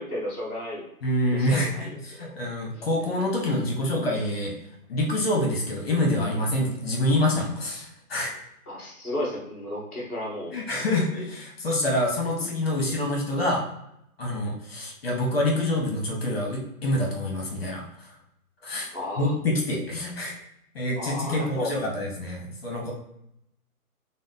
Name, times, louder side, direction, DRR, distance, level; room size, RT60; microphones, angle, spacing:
voice 1, 0.0-0.8 1.3-1.9 2.2-2.5 2.7-2.9 8.7-10.5 18.9-19.3 21.0-21.7, left 1 dB, 5° left, -5 dB, 0.6 m, -33 dB
voice 2, 1.0-1.7 2.0-4.5 4.9-8.3 10.5-13.6 14.2-18.1 18.6-18.9 19.2-20.3 20.7-22.9, left 1 dB, 45° left, -1 dB, 0.8 m, -26 dB
2.9 x 2.0 x 3.8 m, 0.79 s
hypercardioid pair, 160°, 44 cm